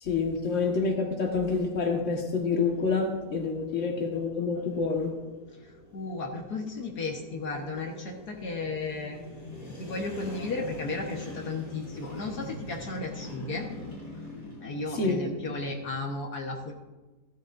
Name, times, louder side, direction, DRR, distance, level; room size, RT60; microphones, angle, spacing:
voice 1, 0.0-5.1 14.9-15.2, left 4 dB, 50° left, 2 dB, 1.8 m, -27 dB
sound 1, 1.7-16.1, left 2 dB, 90° left, 4.0 m, -44 dB
voice 2, 5.5-9.2 9.8-13.7 14.6-16.7, left 3 dB, 70° left, 0 dB, 1.8 m, -34 dB
16.0 x 13.5 x 2.6 m, 1.2 s
omnidirectional pair, 1.8 m